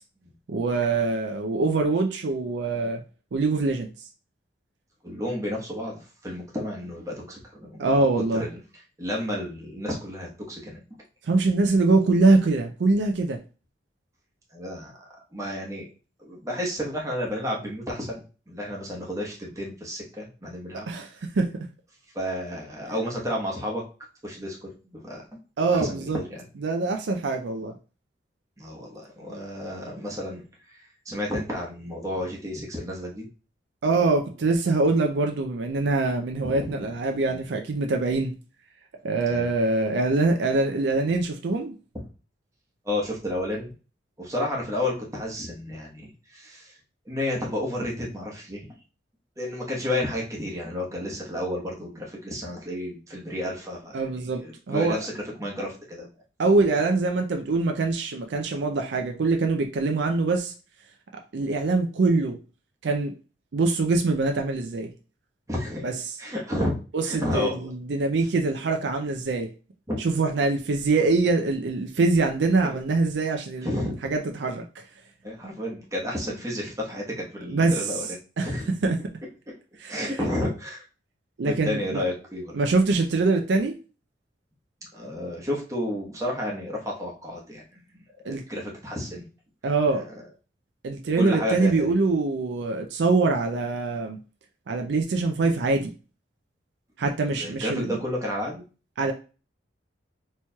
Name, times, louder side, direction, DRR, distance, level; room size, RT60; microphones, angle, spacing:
voice 1, 0.5-3.0 3.3-3.9 7.8-8.5 11.2-13.4 20.7-21.1 21.4-21.7 25.6-26.2 26.6-27.7 33.8-38.3 39.0-41.7 53.9-54.4 54.7-55.0 56.4-60.5 61.3-62.4 62.8-63.1 63.5-64.9 65.8-65.9 66.9-69.5 70.0-74.7 77.5-77.7 78.4-78.5 78.8-79.0 79.8-80.0 81.4-82.0 82.5-83.8 88.2-88.4 89.6-90.0 90.8-94.2 94.7-95.9 97.0-98.0 99.0-99.1, right 3 dB, 65° right, 4 dB, 0.4 m, -24 dB
voice 2, 5.0-8.6 9.0-10.8 14.5-14.9 15.3-15.9 16.2-20.9 22.1-23.8 24.2-25.2 25.7-26.4 28.6-33.3 36.4-36.9 37.3-37.5 39.3-39.5 42.8-43.7 44.2-46.8 47.1-48.7 49.4-56.1 56.7-56.8 60.2-60.3 65.5-65.9 66.2-66.7 67.0-67.7 69.9-70.1 72.6-72.8 73.6-73.9 75.2-78.2 78.4-78.7 79.9-80.8 81.4-82.6 84.9-87.8 88.2-89.3 89.9-90.1 91.2-92.0 97.3-98.6, left 1 dB, 20° right, -2 dB, 1.0 m, -31 dB
4.3 x 3.0 x 2.2 m, 0.34 s
head